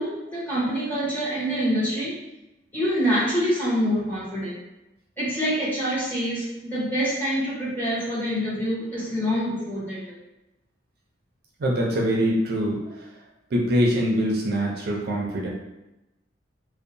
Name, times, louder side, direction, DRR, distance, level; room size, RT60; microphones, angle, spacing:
voice 1, 0.0-2.1 2.7-4.6 5.2-10.1, equal, 10° left, -9 dB, 0.9 m, -26 dB
voice 2, 11.6-12.9 13.5-15.5, equal, 55° right, -2 dB, 0.4 m, -23 dB
2.7 x 2.1 x 2.6 m, 0.96 s
head